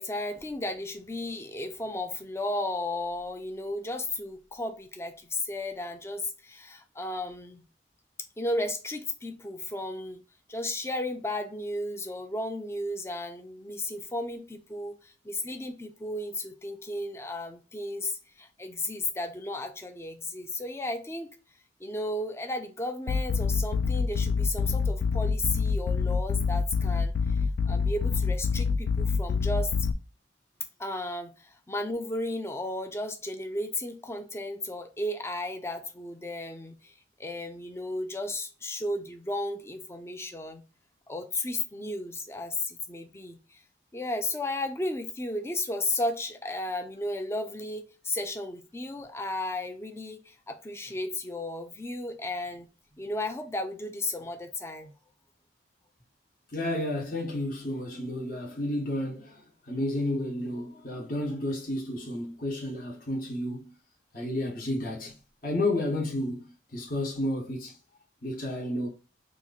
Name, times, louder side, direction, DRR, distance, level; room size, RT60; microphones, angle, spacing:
voice 1, 0.0-7.6 8.4-10.2 10.5-21.3 21.8-29.9 30.8-36.9 37.2-40.6 41.1-43.6 43.9-52.7 53.0-54.9, left 1 dB, 15° left, 0.4 m, -34 dB
sound 1, 23.1-29.9, left 5 dB, 75° left, 0.4 m, -27 dB
voice 2, 56.5-63.7 64.1-65.1 65.4-66.4 66.7-67.8 68.2-68.9, left 1 dB, 45° left, 1.0 m, -31 dB
3.0 x 2.4 x 3.8 m
head